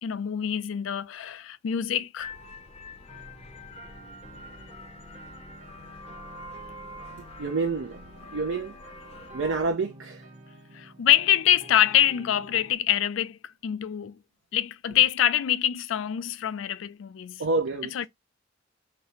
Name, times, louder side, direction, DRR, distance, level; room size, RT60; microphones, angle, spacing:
voice 1, 0.0-2.3 10.7-14.2 14.5-17.4 17.9-18.1, left 11 dB, 75° left, 0.4 m, -25 dB
sound 1, 2.2-9.7, left 1 dB, 35° left, 0.6 m, -44 dB
sound 2, 3.1-12.7, right 1 dB, 40° right, 0.8 m, -50 dB
voice 2, 7.4-8.0 8.3-8.7 9.3-10.3 17.4-17.9, right 3 dB, 70° right, 0.5 m, -28 dB
4.0 x 2.0 x 4.3 m
head